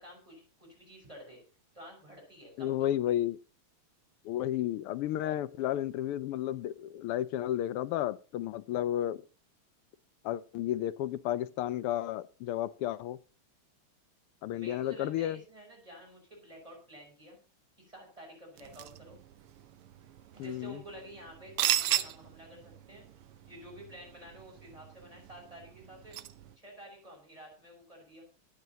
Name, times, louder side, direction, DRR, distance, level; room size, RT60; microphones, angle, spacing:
voice 1, 0.0-1.4 1.7-3.2 14.5-17.4 17.8-19.2 20.3-23.1 23.5-26.2 26.6-28.2, right 1 dB, 15° right, 5.9 m, -50 dB
voice 2, 2.6-3.4 4.2-9.2 10.2-13.2 14.4-15.4 20.4-20.8, left 12 dB, 90° left, 1.7 m, -32 dB
sound 1, 18.6-26.6, right 13 dB, 85° right, 1.7 m, -37 dB
23.0 x 8.0 x 2.9 m
omnidirectional pair, 2.4 m